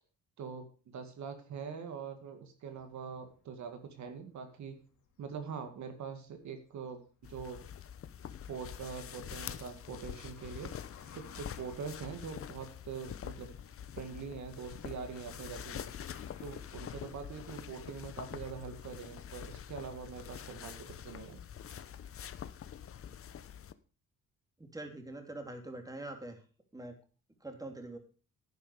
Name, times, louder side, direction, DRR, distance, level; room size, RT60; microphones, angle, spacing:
voice 1, 0.4-4.8 5.2-7.6 8.5-10.7 11.1-13.5 14.0-15.9 16.4-21.4, right 6 dB, 70° right, 6 dB, 2.1 m, -43 dB
sound 1, 2.7-18.1, left 6 dB, 75° left, 3.1 m, -63 dB
sound 2, 7.2-23.7, left 9 dB, 45° left, 0.8 m, -46 dB
voice 2, 24.7-26.4 26.7-26.9 27.4-28.0, right 2 dB, 10° right, 4 dB, 3.0 m, -43 dB
11.0 x 9.7 x 4.9 m, 0.37 s
cardioid pair, 90°, 30 cm